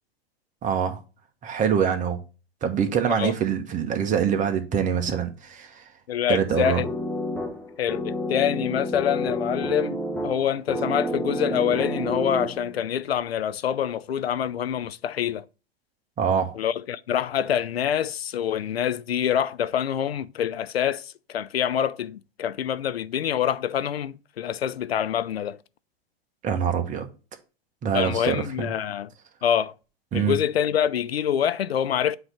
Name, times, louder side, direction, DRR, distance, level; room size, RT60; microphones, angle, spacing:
voice 1, 0.6-1.0 1.4-2.2 2.6-5.8 6.3-6.8 16.2-16.5 26.4-27.1 27.8-28.7 30.1-30.4, right 7 dB, 25° right, 1.2 m, -24 dB
voice 2, 6.1-6.9 7.8-15.5 16.5-25.6 27.9-29.1 29.4-29.7 30.1-32.2, left 9 dB, 85° left, 0.5 m, -26 dB
sound 1, 6.8-12.8, equal, 5° left, 1.3 m, -30 dB
7.9 x 3.1 x 5.5 m
hypercardioid pair, 105°, 30 cm